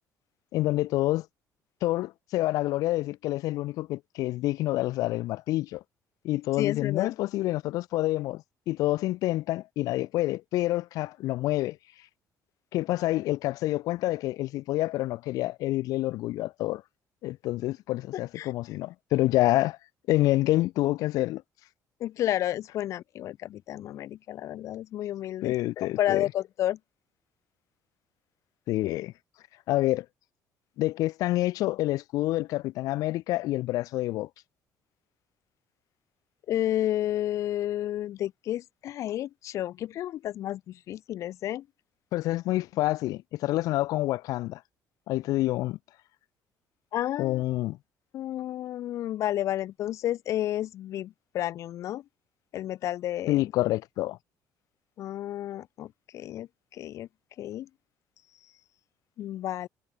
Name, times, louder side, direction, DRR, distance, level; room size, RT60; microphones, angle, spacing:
voice 1, 0.5-1.3 1.8-5.8 6.2-11.8 12.7-16.8 17.2-19.8 20.1-21.4 25.4-26.2 28.7-29.1 29.7-30.1 30.8-34.3 42.1-44.6 45.1-45.8 47.2-47.8 53.3-54.2, left 17 dB, 65° left, 0.5 m, -27 dB
voice 2, 6.6-7.1 18.4-18.5 22.0-26.8 36.5-41.7 46.9-47.4 48.1-52.0 52.5-53.4 55.0-57.1 57.4-57.7 59.2-59.7, left 12 dB, 50° left, 1.1 m, -31 dB
cardioid pair, 165°, 7 cm